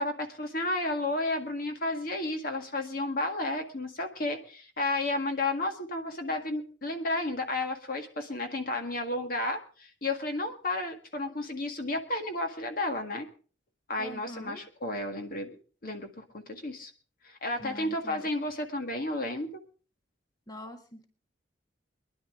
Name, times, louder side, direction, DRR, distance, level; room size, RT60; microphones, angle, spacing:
voice 1, 0.0-13.3 13.9-15.6 15.8-16.9 17.2-19.6, left 2 dB, 50° left, 5 dB, 1.8 m, -32 dB
voice 2, 14.0-14.6 17.6-18.3 20.5-21.0, equal, 20° left, 5 dB, 1.6 m, -44 dB
23.0 x 11.0 x 3.8 m, 0.38 s
head